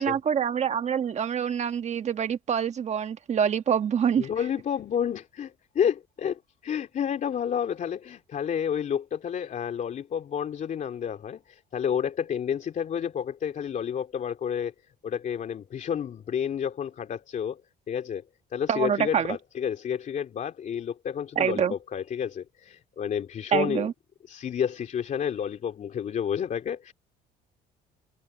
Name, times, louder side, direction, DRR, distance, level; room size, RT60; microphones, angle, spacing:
voice 1, 0.0-4.3 18.7-19.4 21.3-21.7 23.5-23.9, right 8 dB, 40° right, 1.4 m, -26 dB
voice 2, 4.2-14.7 15.0-17.6 17.9-18.2 18.5-23.9 24.3-26.9, left 8 dB, 50° left, 3.0 m, -30 dB
cardioid pair, 110°, 17 cm